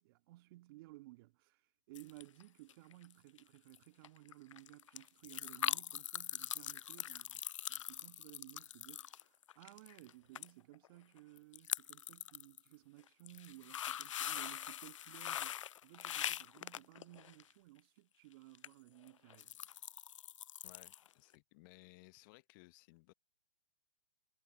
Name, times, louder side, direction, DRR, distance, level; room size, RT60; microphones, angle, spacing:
voice 1, 0.0-1.6 1.9-7.4 7.7-19.6, right 19 dB, 45° right, 2.2 m, -58 dB
sound 1, 1.9-2.4 2.7-3.1 3.4-3.5 3.7-3.8 4.0-10.1 10.3-10.5 10.7-10.9 11.4-12.6 13.1-17.5 18.5-18.7 19.1-21.1 21.3-21.4, left 11 dB, 65° left, 0.4 m, -42 dB
voice 2, 20.6-23.1, left 25 dB, 35° left, 0.9 m, -61 dB
figure-of-eight pair, 120°, 18 cm